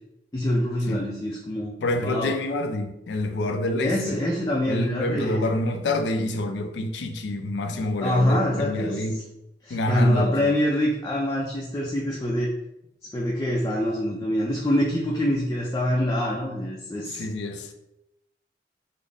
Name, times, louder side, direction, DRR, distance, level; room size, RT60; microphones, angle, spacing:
voice 1, 0.3-1.7 2.0-2.3 3.8-5.4 8.0-9.0 9.6-12.5 13.1-17.2, left 1 dB, 20° left, -3 dB, 0.4 m, -25 dB
voice 2, 1.8-4.2 4.7-9.2 9.7-10.6 17.0-17.7, left 1 dB, 85° left, 6 dB, 0.4 m, -27 dB
3.8 x 2.0 x 3.4 m, 0.87 s
head